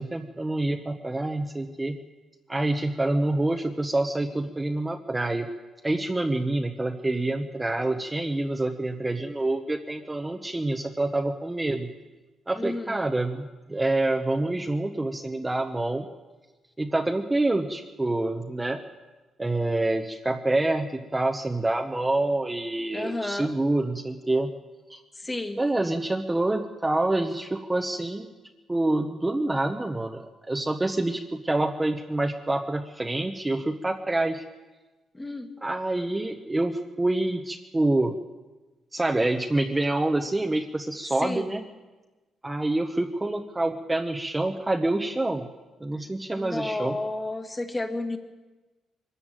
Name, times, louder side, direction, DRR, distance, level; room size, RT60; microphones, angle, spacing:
voice 1, 0.0-2.0 2.5-5.5 5.8-11.9 12.5-16.1 16.8-18.8 19.4-24.5 24.9-25.0 25.6-28.3 28.7-34.4 35.6-38.2 38.9-41.6 42.4-45.5 45.8-47.0, right 2 dB, 10° right, 4 dB, 1.0 m, -27 dB
voice 2, 12.6-13.0 22.9-23.5 25.2-25.6 35.1-35.5 41.2-41.4 46.3-48.2, left 2 dB, 15° left, 7 dB, 1.7 m, -31 dB
23.0 x 13.5 x 9.0 m, 1.2 s
cardioid pair, 140°, 0 cm